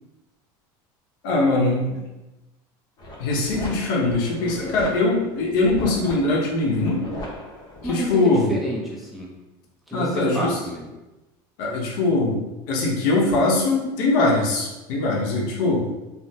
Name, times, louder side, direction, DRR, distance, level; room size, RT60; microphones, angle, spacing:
voice 1, 1.2-2.0 3.2-7.0 7.8-8.5 9.9-10.6 11.6-12.4 12.7-15.9, left 2 dB, 70° left, -2 dB, 0.8 m, -21 dB
sound 1, 3.0-8.2, equal, 40° left, 0.7 m, -37 dB
voice 2, 7.8-9.3 9.9-10.9, right 1 dB, ahead, -4 dB, 0.6 m, -30 dB
3.3 x 2.0 x 2.7 m, 1.0 s
cardioid pair, 145°, 11 cm